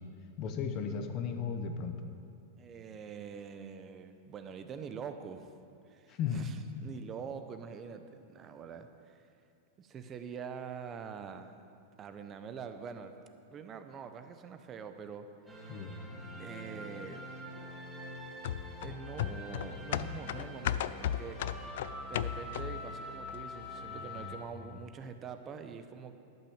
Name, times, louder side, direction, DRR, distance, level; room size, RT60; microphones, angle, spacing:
voice 1, 0.4-2.0 6.1-6.5 15.7-16.0, left 6 dB, 35° left, 7 dB, 0.9 m, -35 dB
voice 2, 2.6-5.5 5.9-9.2 9.8-11.6 12.0-13.1 13.5-15.7 16.3-17.3 18.8-21.7 22.1-26.1, right 6 dB, 25° right, 9 dB, 0.6 m, -45 dB
sound 1, 15.5-24.4, left 1 dB, 5° right, 1.6 m, -45 dB
sound 2, 18.4-22.9 23.3-23.4, left 11 dB, 70° left, 0.3 m, -35 dB
12.0 x 5.8 x 7.2 m, 2.5 s
supercardioid pair, 150°, 0 cm